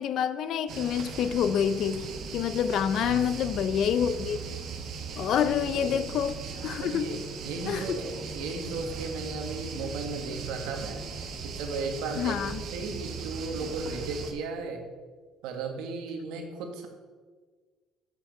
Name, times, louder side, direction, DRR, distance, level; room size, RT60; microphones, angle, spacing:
voice 1, 0.0-2.1 2.3-4.4 5.2-6.4 6.6-7.1 7.7-8.0 12.2-12.6, left 8 dB, 50° left, 13 dB, 0.4 m, -27 dB
sound 1, 0.7-14.3, right 5 dB, 45° right, 1.0 m, -38 dB
voice 2, 3.0-3.3 5.2-6.0 6.8-11.0 11.4-14.8 15.4-16.9, right 4 dB, 90° right, 4 dB, 1.4 m, -36 dB
6.9 x 5.8 x 6.7 m, 1.5 s
cardioid pair, 170°, 0 cm